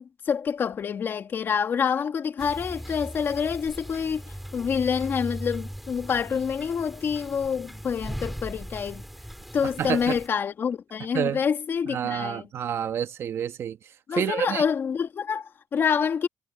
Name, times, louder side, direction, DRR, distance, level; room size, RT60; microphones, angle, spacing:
voice 1, 0.0-9.0 9.5-12.5 14.1-16.3, left 7 dB, 45° left, 2.1 m, -27 dB
sound 1, 2.4-10.3, equal, ahead, 6.2 m, -39 dB
voice 2, 9.8-10.2 11.1-11.4 11.8-13.8 14.1-14.6, right 9 dB, 60° right, 1.3 m, -28 dB
cardioid pair, 130°, 5 cm